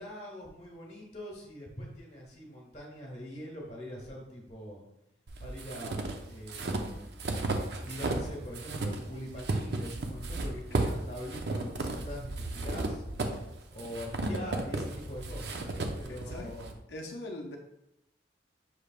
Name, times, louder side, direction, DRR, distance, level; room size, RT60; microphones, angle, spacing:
voice 1, 0.0-4.8 5.4-7.4 7.8-13.0 13.7-15.7 15.9-16.7, equal, 35° left, -1 dB, 1.3 m, -43 dB
sound 1, 5.3-8.3 8.5-16.7, right 2 dB, 55° right, 0.5 m, -34 dB
voice 2, 16.1-16.6 16.9-17.6, left 1 dB, 55° left, 2 dB, 0.5 m, -41 dB
6.2 x 3.4 x 2.4 m, 0.82 s
head